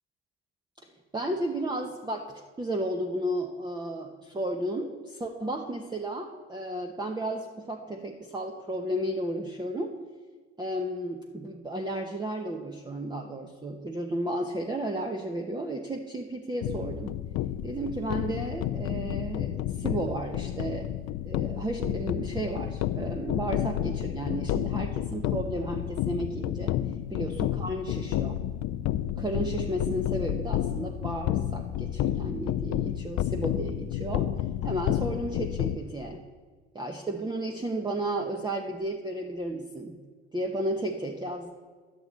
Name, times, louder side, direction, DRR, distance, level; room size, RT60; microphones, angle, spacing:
voice 1, 1.1-9.9 10.6-17.2 17.6-20.9 21.2-26.7 27.1-28.4 29.2-34.3 34.6-36.2 36.7-40.0 40.3-41.5, right 1 dB, 15° right, 3 dB, 1.0 m, -33 dB
sound 1, 16.6-35.8, left 12 dB, 50° left, 0.5 m, -30 dB
12.0 x 9.3 x 4.1 m, 1.5 s
hypercardioid pair, 60°, 33 cm